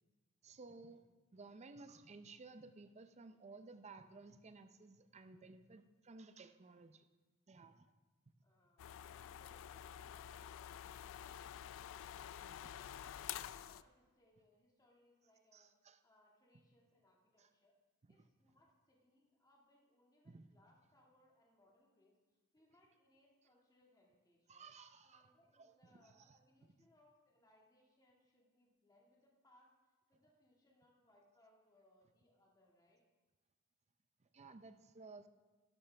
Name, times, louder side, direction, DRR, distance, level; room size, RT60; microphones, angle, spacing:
voice 1, 0.4-7.1 7.5-7.9 12.4-12.6 15.5-16.0 17.4-17.5 20.3-20.5 24.5-26.4 34.2-35.3, right 3 dB, 30° right, 10 dB, 0.5 m, -57 dB
voice 2, 8.4-11.4 12.0-17.8 18.1-24.7 25.0-33.0, left 1 dB, 15° left, -2 dB, 1.8 m, -72 dB
sound 1, 8.8-13.8, left 10 dB, 60° left, 0.3 m, -49 dB
11.5 x 11.0 x 3.4 m, 1.3 s
head